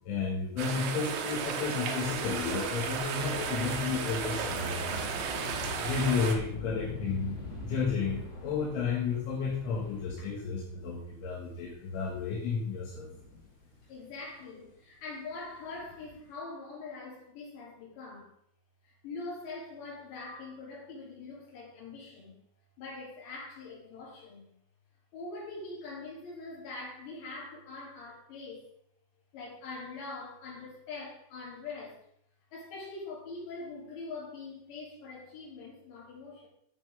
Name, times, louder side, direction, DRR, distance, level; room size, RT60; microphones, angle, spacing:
voice 1, 0.0-5.0 5.8-13.1, left 5 dB, 85° left, -6 dB, 4.2 m, -32 dB
sound 1, 0.6-6.3, right 6 dB, 90° right, 1.9 m, -34 dB
sound 2, 2.0-10.1, left 1 dB, 35° left, 2.5 m, -49 dB
Thunder / Rain, 2.1-11.0 11.7-11.8 12.7-14.0 15.5-16.3, left 3 dB, 20° left, 2.6 m, -44 dB
voice 2, 13.9-18.3 18.8-22.4 22.8-24.5 25.1-28.7 29.3-32.0 32.5-36.5, left 3 dB, 65° left, -5 dB, 5.4 m, -43 dB
11.5 x 7.0 x 3.6 m, 0.72 s
omnidirectional pair, 5.4 m